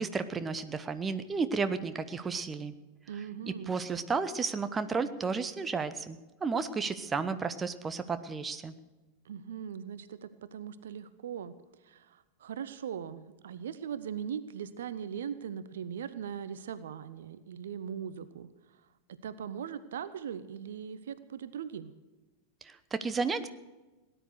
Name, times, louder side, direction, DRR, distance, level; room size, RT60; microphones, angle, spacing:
voice 1, 0.0-2.7 3.7-8.7 22.6-23.5, right 4 dB, 15° right, 11 dB, 0.9 m, -32 dB
voice 2, 3.1-3.7 9.2-11.5 11.8-18.5 19.1-21.9, right 8 dB, 60° right, 14 dB, 0.7 m, -40 dB
18.0 x 10.0 x 6.6 m, 1.1 s
figure-of-eight pair, 90°, 0 cm